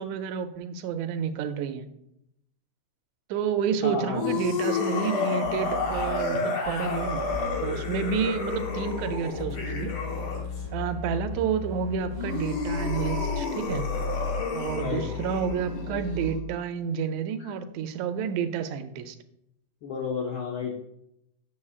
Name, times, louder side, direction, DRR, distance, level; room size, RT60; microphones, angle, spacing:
voice 1, 0.0-1.9 3.3-7.2 7.6-9.9 10.7-13.8 14.5-19.2, right 7 dB, 85° right, 9 dB, 2.0 m, -30 dB
voice 2, 3.8-4.4 14.7-15.1 17.4-17.5 19.8-20.7, left 5 dB, 80° left, 0 dB, 1.1 m, -32 dB
sound 1, 4.1-10.6 12.0-16.4, left 3 dB, 55° left, 1.7 m, -31 dB
sound 2, 5.4-6.0 6.6-16.3, left 5 dB, 30° left, 2.3 m, -35 dB
8.5 x 7.1 x 2.4 m, 0.80 s
omnidirectional pair, 3.4 m